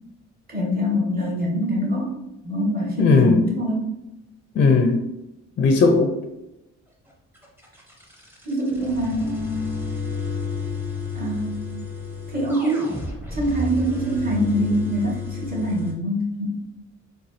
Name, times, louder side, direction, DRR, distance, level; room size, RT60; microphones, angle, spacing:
voice 1, 0.5-3.9 8.4-9.8 11.1-11.7 12.3-13.0 13.3-16.5, equal, 30° right, -3 dB, 1.4 m, -24 dB
voice 2, 3.0-3.4 4.5-5.0 5.6-6.2, left 4 dB, 40° left, 5 dB, 0.4 m, -17 dB
sound 1, 7.3-15.9, left 4 dB, 5° right, 0.8 m, -31 dB
3.9 x 2.2 x 3.1 m, 0.90 s
cardioid pair, 90°, 30 cm